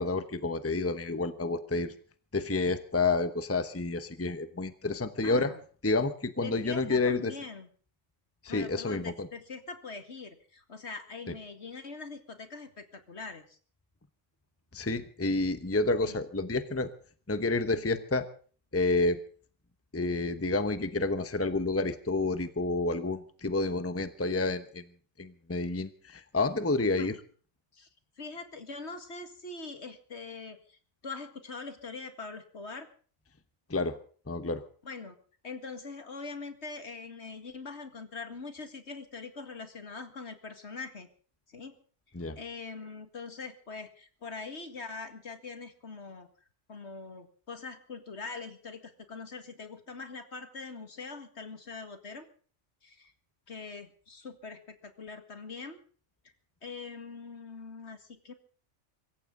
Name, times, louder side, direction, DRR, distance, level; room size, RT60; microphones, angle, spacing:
voice 1, 0.0-1.9 2.3-5.5 5.8-7.3 8.4-9.3 14.7-16.9 17.3-18.3 18.7-19.2 19.9-24.8 25.2-27.2 33.7-34.0 34.3-34.6 42.1-42.4, left 3 dB, 10° left, 11 dB, 1.0 m, -29 dB
voice 2, 5.2-5.6 6.4-7.7 8.5-13.6 16.0-16.2 26.9-27.2 27.7-27.9 28.2-32.9 34.8-35.2 35.4-41.1 41.5-41.8 42.4-46.3 46.7-52.3 52.8-53.1 53.5-55.8 56.6-58.3, left 4 dB, 60° left, 8 dB, 2.3 m, -43 dB
25.0 x 15.0 x 3.9 m, 0.42 s
omnidirectional pair, 1.3 m